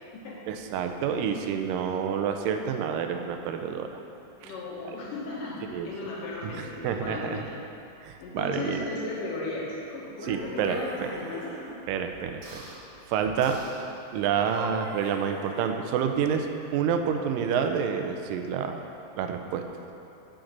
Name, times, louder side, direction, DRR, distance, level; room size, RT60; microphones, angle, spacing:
voice 1, 0.5-4.0 4.4-4.5 5.7-5.9 6.4-7.5 8.0-8.9 10.2-11.1 11.9-12.6 13.1-13.6 14.1-18.8 19.2-19.6, right 7 dB, 80° right, 6 dB, 2.1 m, -28 dB
voice 2, 4.4-7.5 8.2-11.5, left 2 dB, 70° left, -5 dB, 2.9 m, -35 dB
sound 1, 10.1-11.8 12.4-12.8 13.4-13.9 14.3-16.0, right 2 dB, 65° right, 2.3 m, -42 dB
7.7 x 5.2 x 7.3 m, 2.8 s
omnidirectional pair, 4.1 m